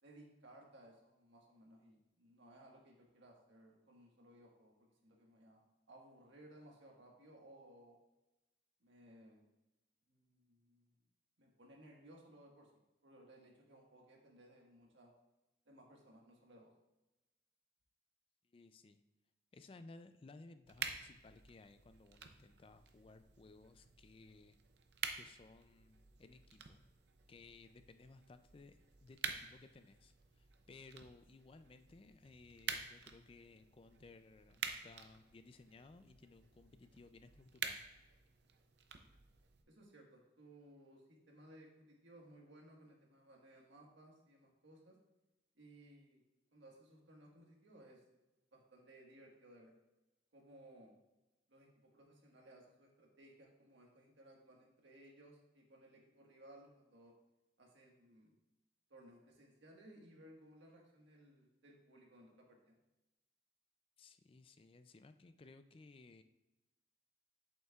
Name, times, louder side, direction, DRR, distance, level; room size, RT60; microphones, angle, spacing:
voice 1, 0.0-5.6 5.9-8.0 8.8-9.5 10.1-10.9 11.4-12.7 13.0-15.1 15.6-16.7 39.7-45.0 45.5-46.2 46.5-48.0 48.5-49.7 50.3-50.9 51.5-57.1 57.6-58.3 58.9-62.8, right 1 dB, 90° right, 0 dB, 1.5 m, -61 dB
voice 2, 18.4-19.0 19.5-24.6 25.1-26.8 27.3-37.9 64.0-66.2, left 3 dB, 30° left, 10 dB, 0.3 m, -59 dB
sound 1, 20.7-39.6, right 6 dB, 65° right, 0.6 m, -49 dB
8.3 x 7.4 x 2.4 m, 0.99 s
head